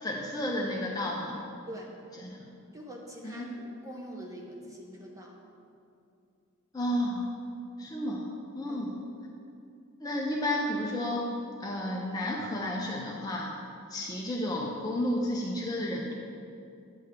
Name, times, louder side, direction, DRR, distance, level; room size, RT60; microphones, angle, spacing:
voice 1, 0.0-1.4 2.2-2.5 3.2-3.5 6.7-7.3 7.8-8.3 8.5-8.9 10.0-11.3 11.6-13.5 13.9-16.1, left 1 dB, 15° left, -2 dB, 0.6 m, -32 dB
voice 2, 2.7-5.4 8.7-8.8, equal, 15° right, -1 dB, 0.9 m, -44 dB
9.2 x 3.5 x 6.6 m, 2.6 s
head